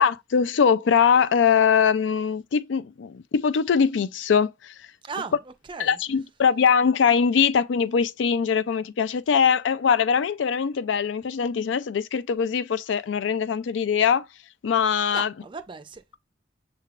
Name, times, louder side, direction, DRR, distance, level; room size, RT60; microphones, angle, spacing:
voice 1, 0.0-4.7 5.8-14.2 14.6-15.3, left 6 dB, 85° left, 0.4 m, -22 dB
voice 2, 5.0-5.3 5.7-6.0 15.1-16.2, right 5 dB, 25° right, 0.5 m, -36 dB
6.5 x 3.4 x 2.4 m
head